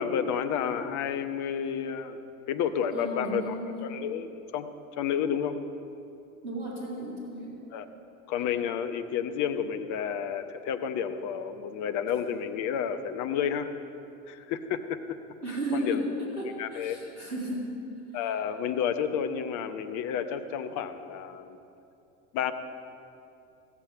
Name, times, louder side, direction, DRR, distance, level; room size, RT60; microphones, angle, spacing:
voice 1, 0.0-2.2 2.5-3.5 3.8-4.3 4.5-5.6 7.7-7.9 8.3-13.7 14.3-15.0 15.7-16.0 16.6-17.3 18.1-21.6 22.3-22.5, left 8 dB, 40° left, 9 dB, 1.0 m, -30 dB
voice 2, 2.9-3.9 6.4-7.6 15.4-17.7 18.1-18.3, right 1 dB, 80° right, -3 dB, 2.6 m, -34 dB
15.0 x 14.5 x 5.1 m, 2.7 s
figure-of-eight pair, 75°, 42 cm